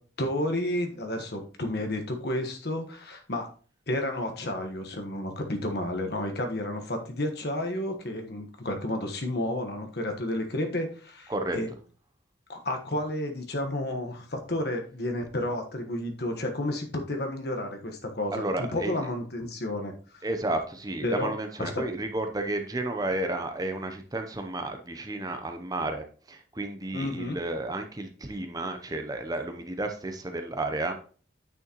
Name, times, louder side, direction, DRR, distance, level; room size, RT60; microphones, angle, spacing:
voice 1, 0.2-3.5 3.9-11.7 12.5-20.2 21.0-21.3 21.6-21.8 26.9-27.4, left 1 dB, 55° left, 4 dB, 1.3 m, -31 dB
voice 2, 18.3-18.9 20.2-31.0, right 2 dB, 20° right, 6 dB, 0.7 m, -32 dB
9.1 x 6.3 x 3.0 m, 0.40 s
head